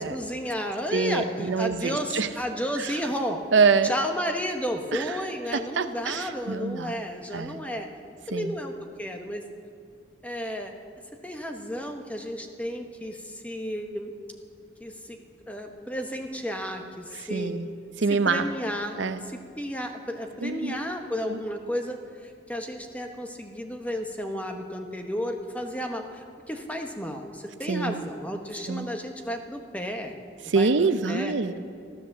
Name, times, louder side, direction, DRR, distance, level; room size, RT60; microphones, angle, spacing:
voice 1, 0.0-3.4 3.8-7.9 8.3-8.7 9.0-9.4 10.2-10.7 11.2-14.1 14.8-15.2 15.5-17.5 18.2-19.0 19.3-22.0 22.5-30.1 30.6-31.3, equal, 10° left, 4 dB, 1.0 m, -32 dB
voice 2, 0.9-2.3 2.8-3.0 3.5-3.9 4.9-5.2 5.5-7.0 7.3-7.6 8.3-8.5 17.3-17.7 18.0-18.5 19.0-19.2 20.4-20.8 21.3-21.4 27.7-28.0 28.7-28.8 30.4-31.6, right 4 dB, 85° right, 11 dB, 0.7 m, -25 dB
13.0 x 13.0 x 7.2 m, 2.2 s
head